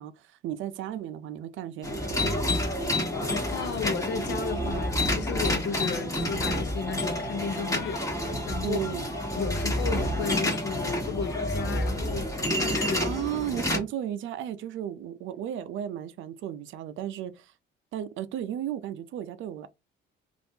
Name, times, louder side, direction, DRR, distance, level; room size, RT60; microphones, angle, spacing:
voice 1, 0.0-2.3 8.6-9.1 13.0-17.5 17.9-19.7, right 10 dB, 75° right, 0.5 m, -34 dB
sound 1, 1.8-13.8, left 1 dB, 15° left, 1.2 m, -29 dB
voice 2, 3.5-8.9 9.4-13.1 13.5-13.7, left 6 dB, 65° left, 0.7 m, -34 dB
3.4 x 2.5 x 2.7 m
cardioid pair, 90°, 20 cm